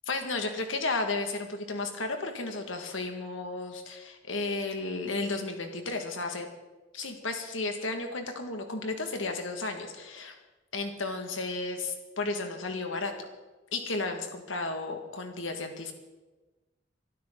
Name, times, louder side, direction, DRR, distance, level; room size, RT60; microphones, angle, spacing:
voice 1, 0.1-6.5 6.9-10.3 10.7-13.1 13.7-15.9, left 3 dB, 90° left, 4 dB, 2.1 m, -33 dB
23.5 x 12.0 x 4.0 m, 1.2 s
head